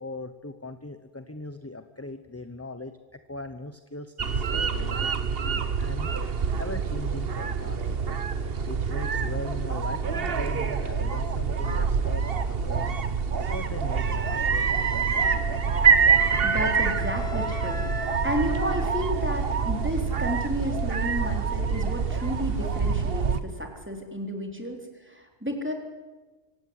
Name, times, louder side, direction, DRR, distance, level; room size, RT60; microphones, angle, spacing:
voice 1, 0.0-5.1 5.4-8.0 8.6-13.0 13.4-15.7, left 2 dB, 15° left, 10 dB, 0.9 m, -40 dB
sound 1, 4.2-23.4, right 6 dB, 55° right, 1.4 m, -26 dB
Wind instrument woodwind instrument, 15.2-19.2, left 6 dB, 70° left, 1.8 m, -39 dB
voice 2, 16.4-25.7, equal, 10° right, 2 dB, 3.9 m, -32 dB
25.0 x 17.5 x 9.7 m, 1.3 s
omnidirectional pair, 1.2 m